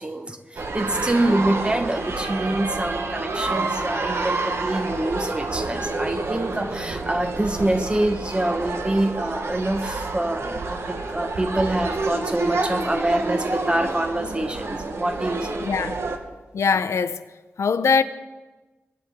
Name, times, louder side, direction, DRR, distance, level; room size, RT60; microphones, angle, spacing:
voice 1, 0.0-15.7, right 1 dB, 20° right, 1.2 m, -26 dB
sound 1, 0.6-16.2, right 3 dB, 65° right, 1.1 m, -28 dB
voice 2, 15.6-16.0 16.5-17.2 17.6-18.0, left 5 dB, 85° left, 0.6 m, -21 dB
23.0 x 9.5 x 3.5 m
wide cardioid pair, 80°, 5 cm